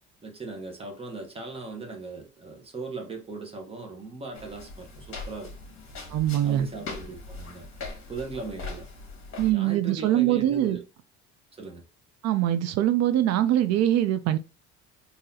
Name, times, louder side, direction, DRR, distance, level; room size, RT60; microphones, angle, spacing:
voice 1, 0.2-5.5 6.4-7.7 8.1-8.9 9.5-10.8 11.6-11.8, right 3 dB, 20° right, 1.0 m, -38 dB
sound 1, 4.3-9.5, left 3 dB, 45° left, 1.5 m, -41 dB
voice 2, 6.1-6.7 9.4-10.8 12.2-14.4, right 12 dB, 60° right, 0.4 m, -23 dB
3.9 x 2.8 x 2.7 m
cardioid pair, 130°, 30 cm